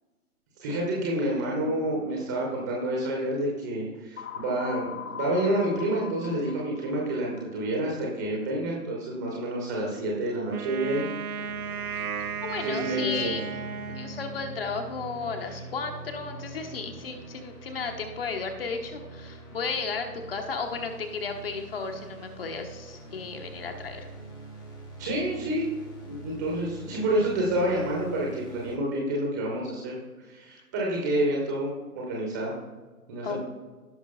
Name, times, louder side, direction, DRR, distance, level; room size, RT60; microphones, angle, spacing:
voice 1, 0.6-4.8 5.1-11.1 12.6-13.3 25.0-25.6 26.0-29.9 30.2-31.7 31.9-32.5 33.1-33.4, right 1 dB, 10° right, -2 dB, 0.7 m, -28 dB
sound 1, 4.2-8.0, left 7 dB, 60° left, 0.7 m, -40 dB
Wind instrument woodwind instrument, 10.5-14.7, right 6 dB, 70° right, 0.6 m, -35 dB
sound 2, 11.4-28.8, right 2 dB, 85° left, 2.1 m, -44 dB
voice 2, 12.4-13.5 13.9-24.1 33.2-33.4, left 4 dB, 40° left, 4 dB, 1.1 m, -34 dB
16.0 x 6.0 x 2.3 m, 1.3 s
figure-of-eight pair, 130°, 46 cm